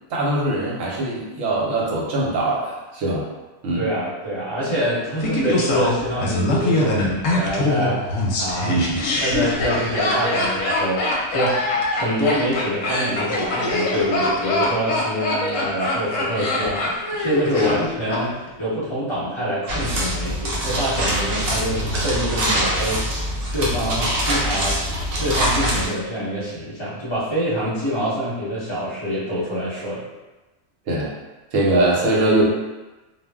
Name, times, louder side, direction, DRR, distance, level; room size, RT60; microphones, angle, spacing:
voice 1, 0.1-3.2 3.6-3.9 8.6-9.0 17.6-17.7 30.9-31.1 31.5-32.4, right 2 dB, 75° right, -4 dB, 1.0 m, -21 dB
voice 2, 3.7-8.1 8.4-23.2 23.5-24.8 25.2-30.0, equal, 25° left, -10 dB, 1.0 m, -25 dB
Laughter, 5.2-18.2 18.5-18.6, left 2 dB, 70° left, 0.9 m, -23 dB
sound 1, 19.7-25.9, right 1 dB, 55° right, 0.8 m, -23 dB
2.4 x 2.0 x 3.4 m, 1.1 s
omnidirectional pair, 1.5 m